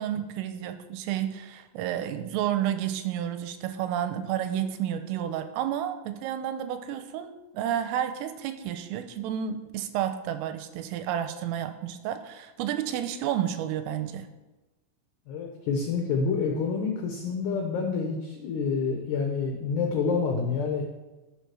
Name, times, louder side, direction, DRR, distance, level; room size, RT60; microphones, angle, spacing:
voice 1, 0.0-14.3, right 10 dB, 90° right, 9 dB, 3.3 m, -31 dB
voice 2, 15.3-20.8, left 5 dB, 70° left, 2 dB, 2.9 m, -28 dB
14.5 x 6.7 x 6.2 m, 1.1 s
omnidirectional pair, 5.9 m